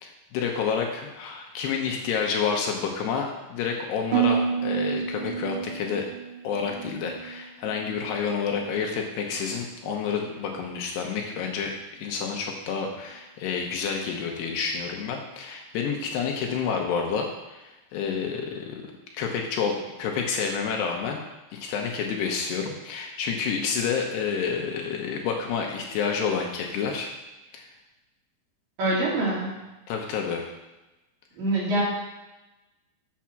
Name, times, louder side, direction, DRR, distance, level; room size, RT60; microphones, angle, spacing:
voice 1, 0.0-6.1 6.4-11.7 12.0-21.2 21.5-27.1 27.5-27.7 29.9-30.5, left 6 dB, 75° left, 2 dB, 2.8 m, -29 dB
Harp, 4.1-8.2 8.5-9.1 9.6-9.9, right 7 dB, 80° right, 3.4 m, -30 dB
voice 2, 28.8-29.6 31.4-31.8, right 2 dB, 50° right, -6 dB, 4.1 m, -25 dB
7.4 x 7.2 x 5.9 m, 1.0 s
omnidirectional pair, 5.2 m